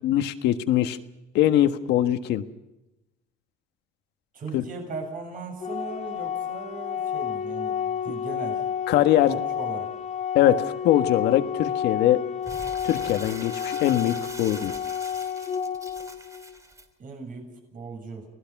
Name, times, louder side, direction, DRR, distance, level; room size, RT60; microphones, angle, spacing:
voice 1, 0.0-1.0 1.3-2.4 4.5-4.6 8.9-9.4 10.3-12.2 12.8-14.7, left 12 dB, 85° left, 9 dB, 1.5 m, -22 dB
voice 2, 4.3-8.6 9.2-9.9 17.0-18.3, right 3 dB, 55° right, 3 dB, 7.4 m, -38 dB
Organ, 5.6-16.6, left 8 dB, 45° left, 2.4 m, -30 dB
Crumpling crinkling, 12.4-16.8, right 2 dB, 20° right, 3.1 m, -42 dB
29.0 x 18.5 x 6.0 m, 0.98 s
cardioid pair, 110°, 17 cm